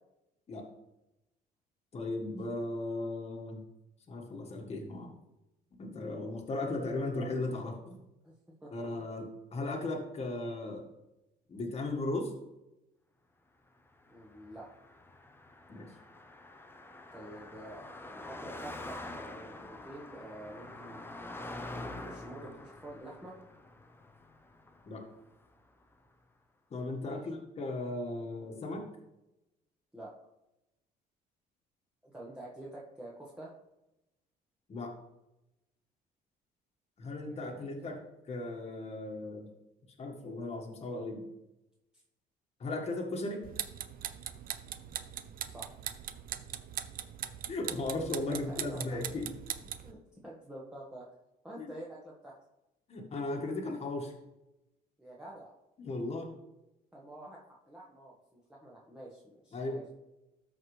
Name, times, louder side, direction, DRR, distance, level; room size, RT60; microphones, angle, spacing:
voice 1, 1.9-3.6 4.1-5.1 5.8-7.9 8.7-10.8 11.5-12.3 15.7-15.9 24.8-25.0 26.7-28.8 34.7-34.9 37.0-38.0 38.3-39.5 40.0-41.2 42.6-43.4 47.5-49.3 51.6-51.7 52.9-54.1 55.8-56.3 59.5-59.8, left 2 dB, 40° left, 1 dB, 1.7 m, -36 dB
Car passing by, 14.0-25.5, left 2 dB, 15° left, 0.8 m, -46 dB
voice 2, 14.1-14.7 17.1-21.0 21.7-23.3 27.0-27.2 29.9-30.1 32.0-33.5 37.2-37.9 45.5-45.7 48.3-49.2 49.8-51.1 51.4-52.3 55.0-55.5 56.9-59.9, right 1 dB, 5° right, -5 dB, 1.5 m, -48 dB
sound 1, 43.4-49.9, right 10 dB, 60° right, 0.6 m, -40 dB
13.0 x 4.7 x 3.3 m, 0.92 s
cardioid pair, 110°, 17 cm